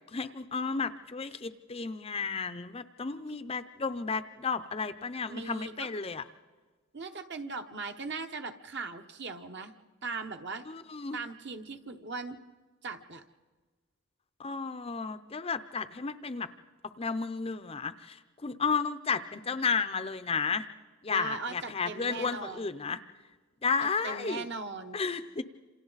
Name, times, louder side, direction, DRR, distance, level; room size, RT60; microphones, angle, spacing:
voice 1, 0.1-6.2 10.7-11.2 14.4-16.5 17.0-20.7 21.0-23.0 23.6-24.5 24.9-25.4, left 5 dB, 25° left, 11 dB, 0.5 m, -33 dB
voice 2, 5.3-5.9 6.9-9.7 10.0-10.7 11.1-12.4 12.8-13.2 21.1-22.7 24.0-25.0, right 4 dB, 55° right, 6 dB, 1.1 m, -39 dB
27.5 x 27.5 x 4.0 m, 1.4 s
head